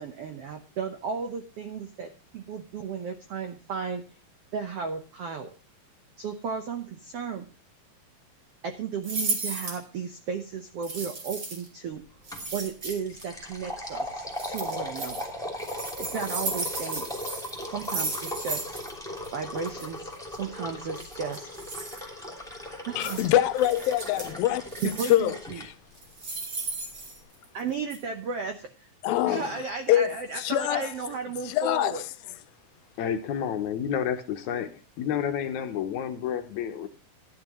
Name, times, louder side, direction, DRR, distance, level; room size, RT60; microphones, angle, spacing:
voice 1, 0.0-4.0 4.5-5.5 6.2-7.5 8.6-12.0 12.5-15.2 16.0-17.1 17.6-18.8 19.3-21.5 21.9-22.1 22.9-23.3 24.8-25.6 27.5-28.9 29.3-32.0, right 6 dB, 80° right, 1.3 m, -34 dB
sound 1, 9.0-9.8 10.8-11.7 12.2-13.2 14.3-15.2 15.6-18.9 19.2-19.3 19.6-19.9 21.0-22.0 23.0-23.2 23.6-24.3 24.7-25.3 25.9-27.6 27.9-28.0, right 3 dB, 40° right, 3.3 m, -34 dB
sound 2, 12.3-12.5 12.8-25.7, left 1 dB, ahead, 2.4 m, -38 dB
voice 2, 23.0-25.7 29.0-29.6 29.9-30.9 31.5-32.0, left 13 dB, 90° left, 2.5 m, -25 dB
voice 3, 33.0-34.7 35.0-36.9, left 8 dB, 70° left, 2.0 m, -30 dB
13.0 x 10.5 x 3.0 m
omnidirectional pair, 4.0 m